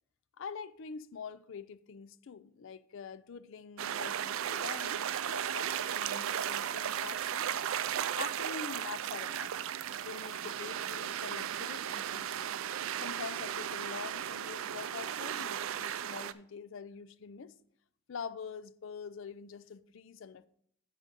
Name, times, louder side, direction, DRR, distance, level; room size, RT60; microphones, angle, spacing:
voice 1, 0.4-7.5 8.1-9.6 10.0-12.6 13.0-17.5 18.1-20.5, left 6 dB, 65° left, 0.4 m, -45 dB
sound 1, 3.8-16.3, right 9 dB, 80° right, 0.4 m, -35 dB
9.9 x 3.9 x 6.6 m
head